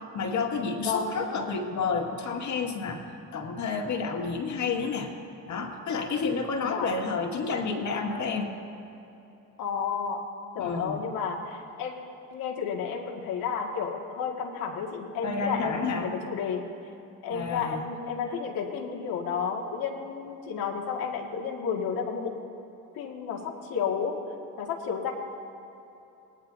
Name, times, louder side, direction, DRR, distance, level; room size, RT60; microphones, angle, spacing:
voice 1, 0.1-5.1 5.5-8.5 10.6-11.0 15.2-16.1 17.3-17.9, left 4 dB, 55° left, 2 dB, 2.1 m, -30 dB
voice 2, 0.8-1.1 6.6-6.9 9.6-10.2 10.5-11.9 12.3-16.6 17.2-22.4 22.9-24.2 24.6-25.1, left 6 dB, 80° left, 1 dB, 2.1 m, -31 dB
23.0 x 18.5 x 2.8 m, 2.9 s
cardioid pair, 100°, 35 cm